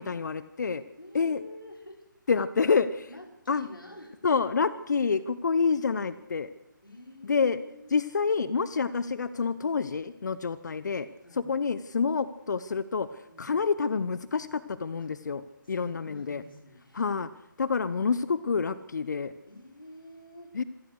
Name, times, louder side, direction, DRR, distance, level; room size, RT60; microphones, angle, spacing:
voice 1, 0.0-0.8 1.1-1.4 2.3-3.1 3.5-3.7 4.2-6.5 7.2-7.6 7.9-11.1 11.3-16.4 16.9-17.3 17.6-19.3 20.5-20.6, left 5 dB, 60° left, 15 dB, 1.0 m, -28 dB
voice 2, 1.0-2.1 3.1-4.2 6.8-7.9 11.2-11.5 13.3-13.5 15.0-15.1 15.6-17.2 19.5-20.5, left 1 dB, 90° left, 2 dB, 5.7 m, -48 dB
26.0 x 18.0 x 6.6 m, 0.88 s
figure-of-eight pair, 145°, 11 cm